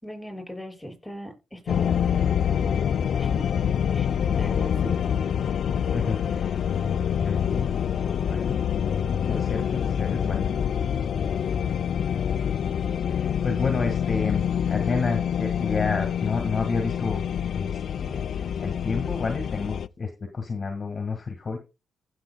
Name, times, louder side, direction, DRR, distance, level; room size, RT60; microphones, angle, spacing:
voice 1, 0.0-2.3 3.2-3.5 3.9-4.1 4.4-5.0, equal, 5° left, 5.8 m, -39 dB
sound 1, 1.7-19.9, left 8 dB, 60° left, 0.4 m, -26 dB
voice 2, 5.9-6.6 6.8-7.7 8.2-8.6 9.3-10.6 11.6-11.7 13.1-17.2 17.5-21.6, left 4 dB, 35° left, 1.7 m, -30 dB
15.5 x 7.0 x 2.3 m
cardioid pair, 90°, 0 cm